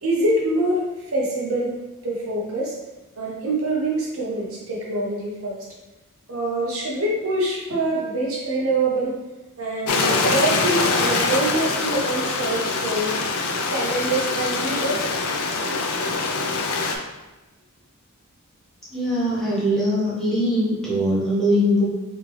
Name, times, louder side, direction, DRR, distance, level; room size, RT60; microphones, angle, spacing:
voice 1, 0.0-1.8 2.0-2.7 3.2-5.6 6.3-9.1 9.6-13.2 13.6-15.0, right 2 dB, 70° right, -4 dB, 1.0 m, -25 dB
Stream, 9.9-17.0, left 3 dB, 80° left, 0.5 m, -24 dB
voice 2, 18.9-21.8, equal, ahead, -10 dB, 1.2 m, -21 dB
3.6 x 3.2 x 3.1 m, 1.1 s
head